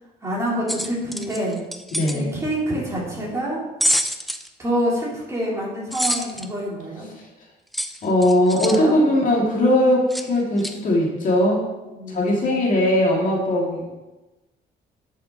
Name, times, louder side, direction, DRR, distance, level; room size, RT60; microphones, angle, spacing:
voice 1, 0.2-1.6 2.1-3.6 4.6-7.1 8.5-9.0 12.0-12.9, equal, 15° right, -6 dB, 3.7 m, -27 dB
sound 1, 0.7-2.2 3.8-4.5 5.9-6.5 7.7-8.8 10.1-10.3 10.6-10.7, equal, ahead, 0.5 m, -26 dB
voice 2, 1.9-2.3 8.0-11.7 12.1-13.9, left 1 dB, 45° left, -2 dB, 2.3 m, -19 dB
11.0 x 6.5 x 4.0 m, 1.1 s
cardioid pair, 125°, 18 cm